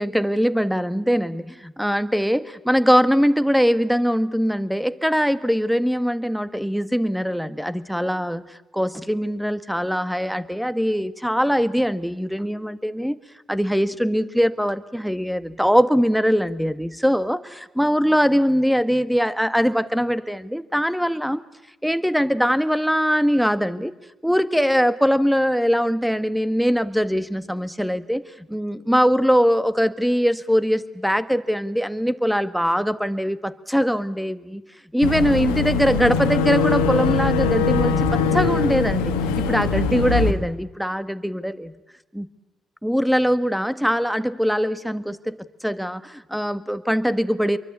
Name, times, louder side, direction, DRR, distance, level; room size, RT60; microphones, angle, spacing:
voice 1, 0.0-13.2 13.5-21.4 21.8-23.9 24.2-34.6 34.9-41.8 42.1-42.3 42.8-47.6, equal, ahead, 12 dB, 1.7 m, -22 dB
Boat Water vehicle / Engine, 35.0-40.3, left 4 dB, 85° left, 1.8 m, -22 dB
28.0 x 23.5 x 8.6 m, 0.97 s
hypercardioid pair, 50°, 0 cm